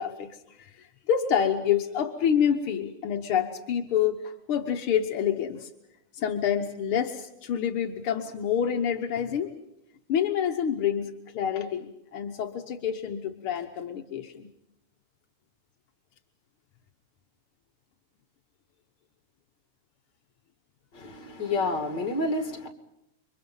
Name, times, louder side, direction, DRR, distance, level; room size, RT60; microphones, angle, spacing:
voice 1, 0.0-5.7 6.1-9.5 10.1-14.5, left 8 dB, 85° left, 4 dB, 2.0 m, -28 dB
voice 2, 20.9-22.7, left 2 dB, 55° left, 5 dB, 3.2 m, -29 dB
29.0 x 24.0 x 5.6 m, 0.89 s
omnidirectional pair, 2.3 m